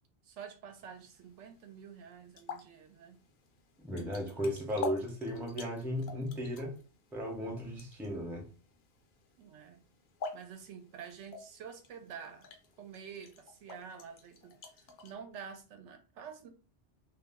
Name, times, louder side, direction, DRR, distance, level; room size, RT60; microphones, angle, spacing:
voice 1, 0.2-3.2 9.4-9.8 10.3-12.5 12.8-16.5, right 7 dB, 85° right, 0.9 m, -48 dB
sound 1, 0.7-15.1, left 4 dB, 65° left, 0.8 m, -48 dB
voice 2, 3.8-6.8 7.1-8.5, equal, 5° right, 0.4 m, -35 dB
2.4 x 2.0 x 3.4 m
omnidirectional pair, 1.2 m